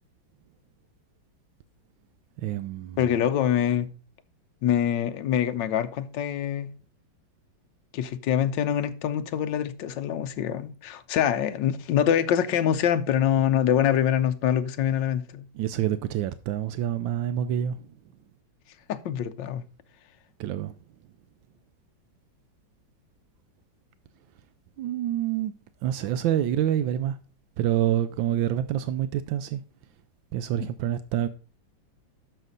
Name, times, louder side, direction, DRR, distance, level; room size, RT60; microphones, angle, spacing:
voice 1, 2.4-3.1 15.5-17.9 20.4-20.7 24.8-25.5 25.8-27.2 27.6-29.6 30.3-31.3, right 11 dB, 85° right, 1.3 m, -27 dB
voice 2, 3.0-3.9 4.6-6.7 7.9-15.5 18.9-19.6, left 9 dB, 70° left, 1.4 m, -25 dB
10.5 x 6.7 x 4.0 m
omnidirectional pair, 2.1 m